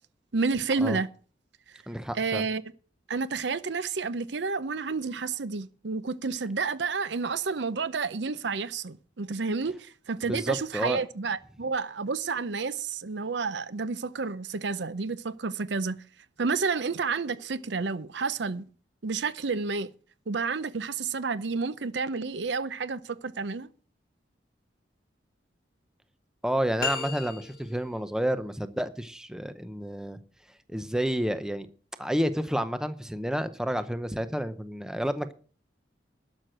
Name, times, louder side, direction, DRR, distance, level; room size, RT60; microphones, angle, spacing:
voice 1, 0.3-1.1 2.1-2.6 3.1-16.0 16.4-18.7 19.0-19.9 20.3-23.7, right 4 dB, 75° right, 0.7 m, -30 dB
voice 2, 1.9-2.4 10.2-11.0 26.4-30.2 30.7-31.7 32.0-35.3, equal, 5° right, 0.6 m, -30 dB
sound 1, 26.8-27.9, left 6 dB, 50° left, 1.4 m, -34 dB
12.0 x 6.5 x 7.7 m
head